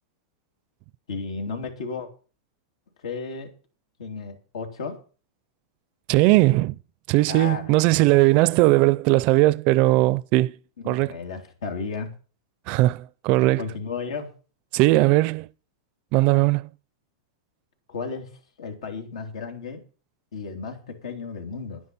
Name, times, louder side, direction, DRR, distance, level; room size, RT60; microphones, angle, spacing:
voice 1, 1.1-2.1 3.0-3.5 4.0-5.0 7.3-8.2 10.8-12.1 13.6-14.3 17.9-18.3 18.6-19.8 20.3-21.8, left 4 dB, 90° left, 3.0 m, -34 dB
voice 2, 6.1-6.7 7.1-10.6 10.9-11.1 12.7-13.6 14.7-15.5 16.1-16.6, right 19 dB, 45° right, 0.5 m, -19 dB
10.0 x 10.0 x 5.4 m
supercardioid pair, 140°, 3 cm